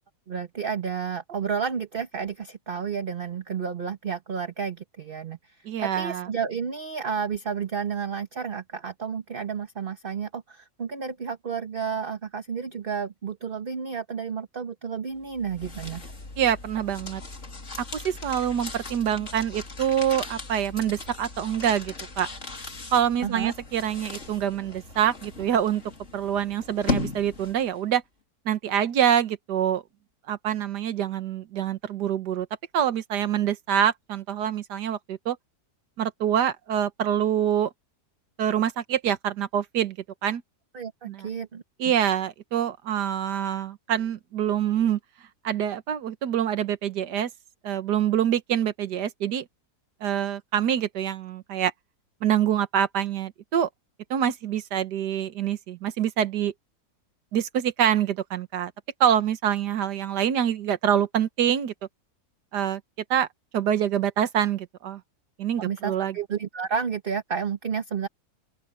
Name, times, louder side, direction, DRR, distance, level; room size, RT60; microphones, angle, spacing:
voice 1, 0.3-16.0 23.2-23.5 40.7-41.6 65.6-68.1, right 6 dB, 35° right, 1.2 m, -31 dB
voice 2, 5.6-6.3 16.4-17.2 17.9-22.3 22.9-25.8 26.1-28.0 28.4-29.8 30.3-32.5 32.7-35.4 36.0-37.7 38.4-40.0 40.2-40.4 41.0-41.3 41.8-45.0 45.4-47.3 47.6-49.4 50.0-51.7 52.2-53.7 54.1-56.5 57.3-58.7 59.0-61.7 62.5-62.8 63.1-63.3 63.5-65.0 65.4-66.2, right 9 dB, 90° right, 1.7 m, -25 dB
sound 1, 15.2-27.8, left 4 dB, 45° left, 3.0 m, -37 dB
open air
omnidirectional pair, 1.7 m